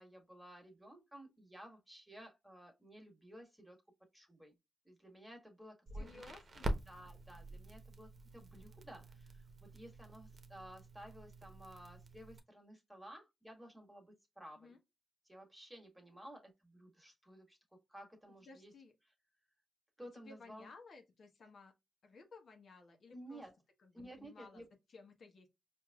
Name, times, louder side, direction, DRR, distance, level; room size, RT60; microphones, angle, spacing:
voice 1, 0.0-3.8 4.1-4.5 4.8-6.3 6.9-14.7 15.3-17.6 17.9-18.7 20.0-20.7 23.1-23.5 23.9-24.6, equal, 5° right, 1.5 m, -55 dB
voice 2, 5.9-6.8 14.6-14.8 16.1-16.2 18.5-18.9 20.1-21.7 22.0-23.4 23.8-24.6 24.9-25.5, left 4 dB, 65° left, 1.0 m, -57 dB
Crackle, 5.9-12.4, right 1 dB, 45° right, 0.9 m, -46 dB
4.6 x 2.6 x 2.3 m
cardioid pair, 75°, 0 cm